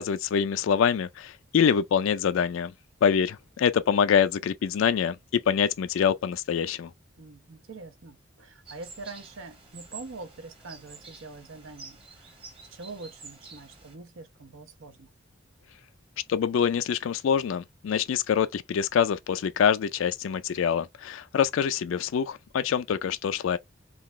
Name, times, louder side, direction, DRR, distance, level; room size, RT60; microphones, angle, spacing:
voice 1, 0.0-2.7 3.0-5.2 5.5-6.9 16.3-23.6, left 7 dB, 75° left, 0.3 m, -25 dB
voice 2, 7.2-12.4 12.7-15.1, right 3 dB, 75° right, 0.8 m, -44 dB
sound 1, 8.7-14.0, right 4 dB, 30° right, 1.2 m, -48 dB
3.9 x 2.4 x 3.1 m
head